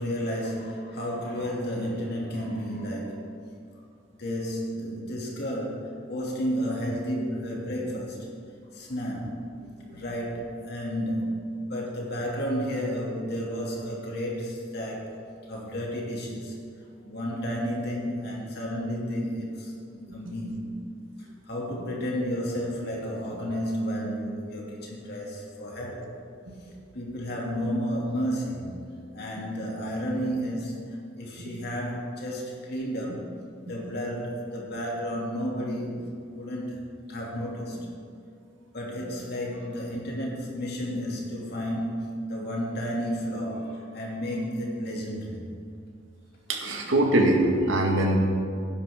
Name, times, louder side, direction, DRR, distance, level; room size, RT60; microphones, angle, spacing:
voice 1, 0.0-3.2 4.2-8.3 8.7-9.5 9.9-15.2 15.5-16.6 17.0-20.9 21.2-26.1 26.9-28.7 29.1-33.3 33.7-36.8 37.1-37.9 38.7-45.5, equal, 55° left, -3 dB, 2.7 m, -32 dB
voice 2, 46.5-48.2, right 1 dB, 90° right, 1 dB, 1.9 m, -23 dB
17.5 x 10.0 x 3.8 m, 2.4 s
head